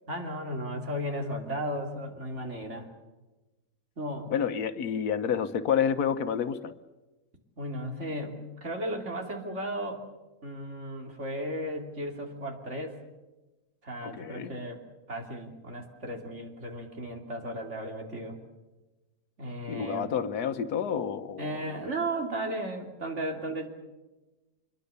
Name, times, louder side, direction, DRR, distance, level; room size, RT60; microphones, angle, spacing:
voice 1, 0.1-2.9 4.0-4.3 7.6-10.0 10.4-13.0 13.8-14.8 15.1-18.4 19.4-20.1 21.4-23.7, right 1 dB, 50° right, 3 dB, 3.4 m, -35 dB
voice 2, 4.3-6.7 14.0-14.5 19.7-21.8, left 7 dB, 90° left, 9 dB, 1.5 m, -29 dB
25.5 x 22.0 x 6.8 m, 1.1 s
omnidirectional pair, 1.6 m